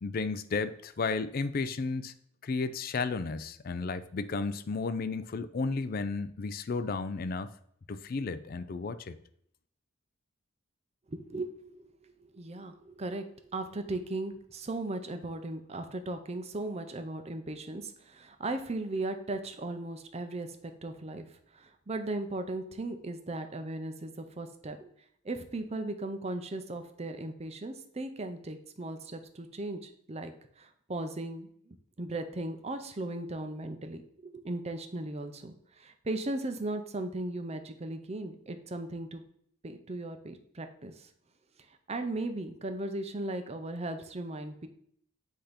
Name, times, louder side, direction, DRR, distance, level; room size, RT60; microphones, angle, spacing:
voice 1, 0.0-2.1 2.4-7.5 7.9-9.2, left 4 dB, 45° left, 12 dB, 0.4 m, -33 dB
voice 2, 11.1-24.9 25.2-39.2 39.6-41.1 41.9-44.7, right 2 dB, 30° right, 7 dB, 0.6 m, -37 dB
8.0 x 2.8 x 5.0 m, 0.67 s
head